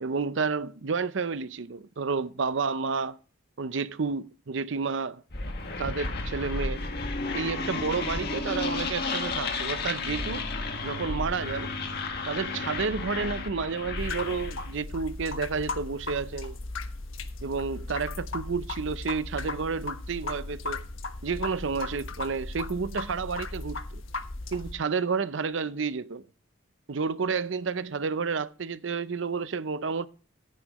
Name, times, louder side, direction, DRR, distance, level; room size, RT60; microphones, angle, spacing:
voice 1, 0.0-3.2 3.6-5.2 5.8-6.8 7.3-10.5 10.8-11.7 12.3-16.6 17.4-20.8 21.2-24.0 24.5-26.3 26.9-30.1, right 5 dB, 65° right, 0.6 m, -30 dB
sound 1, 5.3-14.7, left 3 dB, 55° left, 1.7 m, -32 dB
sound 2, 14.0-24.8, left 2 dB, 85° left, 1.3 m, -37 dB
14.5 x 9.8 x 3.1 m
head